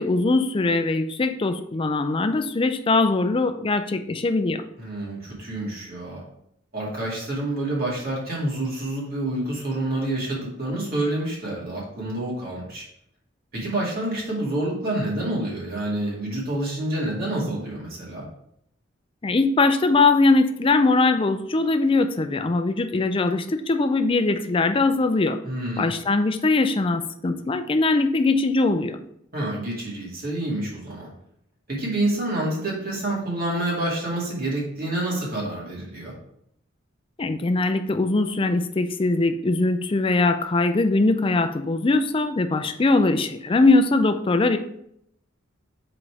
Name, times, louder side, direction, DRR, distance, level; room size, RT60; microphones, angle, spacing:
voice 1, 0.0-4.6 19.2-25.4 25.8-29.0 37.2-44.6, left 3 dB, 25° left, 8 dB, 0.4 m, -21 dB
voice 2, 4.8-6.3 6.7-12.8 13.5-18.2 25.4-26.0 29.3-31.1 31.7-36.1, right 1 dB, 50° right, -4 dB, 2.3 m, -28 dB
5.1 x 4.1 x 4.6 m, 0.74 s
head